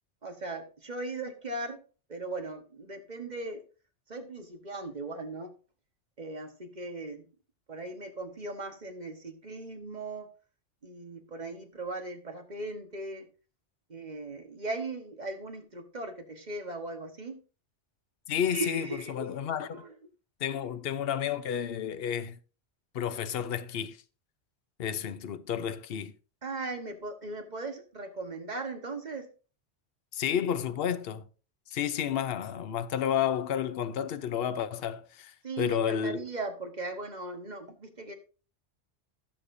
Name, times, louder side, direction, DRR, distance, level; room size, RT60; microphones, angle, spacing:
voice 1, 0.2-1.8 2.1-3.6 4.1-5.5 6.2-7.3 7.7-10.3 10.8-13.3 13.9-17.4 18.5-19.4 19.7-19.9 26.4-29.3 35.4-38.1, right 2 dB, 40° right, 1.4 m, -38 dB
voice 2, 18.3-19.7 20.4-22.4 22.9-24.0 24.8-26.1 30.1-31.2 31.7-36.2, left 9 dB, 60° left, 0.9 m, -31 dB
16.5 x 6.6 x 2.7 m
omnidirectional pair, 1.2 m